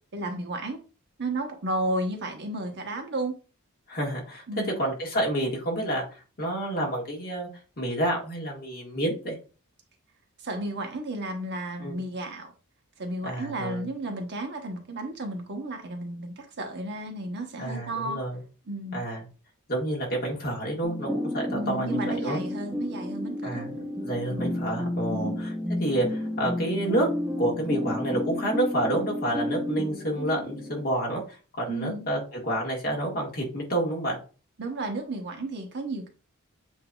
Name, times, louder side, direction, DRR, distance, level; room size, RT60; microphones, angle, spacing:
voice 1, 0.1-0.8 1.2-3.3 4.5-4.8 10.4-12.5 13.0-18.2 18.7-19.0 21.5-23.6 24.3-24.5 25.1-25.4 31.7-32.0 34.6-36.1, right 1 dB, 55° right, 1.0 m, -33 dB
voice 2, 3.9-4.4 4.8-7.5 7.8-9.3 11.8-11.9 13.2-13.8 17.6-18.4 18.9-19.2 19.7-22.4 23.4-25.5 25.8-27.1 27.4-34.2, right 1 dB, 45° left, 1.6 m, -29 dB
sound 1, 20.8-30.9, left 1 dB, 5° right, 0.6 m, -31 dB
7.8 x 2.7 x 2.3 m
head